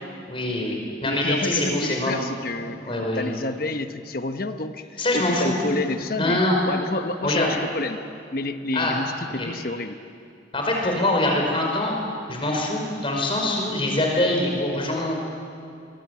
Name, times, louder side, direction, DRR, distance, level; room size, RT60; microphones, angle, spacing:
voice 1, 0.3-2.1 2.8-3.3 5.0-5.6 6.2-6.6 7.2-7.5 8.7-9.0 9.3-9.5 10.5-11.9 12.3-15.1, left 1 dB, 30° left, 0 dB, 5.2 m, -24 dB
voice 2, 1.0-8.0 8.3-10.0, left 2 dB, 50° left, 7 dB, 1.0 m, -29 dB
23.5 x 23.5 x 8.4 m, 2.4 s
head